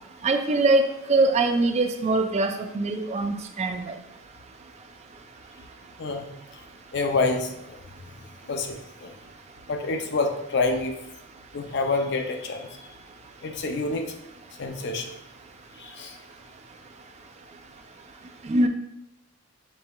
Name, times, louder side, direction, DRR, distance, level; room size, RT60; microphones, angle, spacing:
voice 1, 0.2-0.8 1.1-3.8 18.5-18.7, right 2 dB, 30° right, 6 dB, 0.3 m, -22 dB
voice 2, 6.9-7.5 8.5-9.1 9.7-10.9 11.5-12.8 13.4-14.1 14.6-15.1 15.8-16.1, left 3 dB, 55° left, 5 dB, 0.5 m, -27 dB
5.4 x 3.9 x 2.3 m, 0.86 s
head